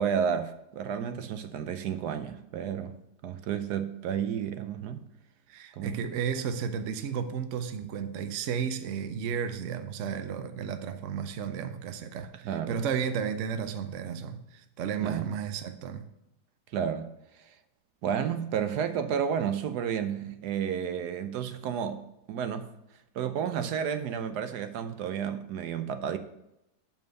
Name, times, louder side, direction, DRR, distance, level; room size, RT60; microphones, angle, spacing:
voice 1, 0.0-2.9 3.2-5.0 5.8-5.9 12.4-12.8 15.0-15.3 16.7-17.1 17.4-17.5 18.0-22.7 23.1-26.2, right 8 dB, 75° right, 1.2 m, -31 dB
voice 2, 5.5-16.0, right 7 dB, 60° right, 0.9 m, -33 dB
7.2 x 5.2 x 6.4 m
omnidirectional pair, 1.8 m